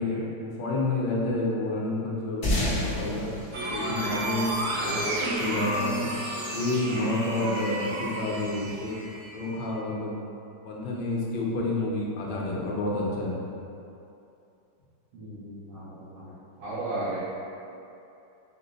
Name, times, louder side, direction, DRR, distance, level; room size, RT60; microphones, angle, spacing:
voice 1, 0.0-3.3 3.7-4.5 4.8-6.1 6.5-8.9 9.3-10.2 10.6-13.4, left 2 dB, 70° left, -4 dB, 1.3 m, -29 dB
sound 1, 2.4-5.2, left 1 dB, 50° left, 0.7 m, -30 dB
sound 2, 3.5-9.7, right 1 dB, 65° right, 1.1 m, -32 dB
voice 2, 4.8-5.2 15.1-17.2, right 2 dB, 85° right, -14 dB, 1.7 m, -36 dB
5.0 x 2.0 x 3.8 m, 2.7 s
omnidirectional pair, 2.1 m